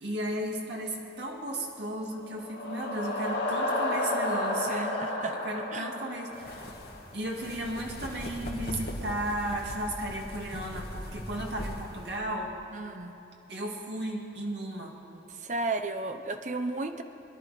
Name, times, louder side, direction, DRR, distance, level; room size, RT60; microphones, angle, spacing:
voice 1, 0.0-5.0 5.4-6.7 7.1-12.5 13.5-15.0, right 1 dB, 70° right, -1 dB, 2.1 m, -34 dB
sound 1, 2.1-7.0, left 1 dB, 80° left, 2.3 m, -32 dB
voice 2, 4.7-5.4 5.7-5.9 12.7-13.1 15.3-17.0, right 3 dB, 40° right, 8 dB, 0.7 m, -34 dB
sound 2, 6.3-12.2, left 1 dB, 55° left, 1.9 m, -40 dB
22.0 x 11.0 x 5.0 m, 3.0 s
head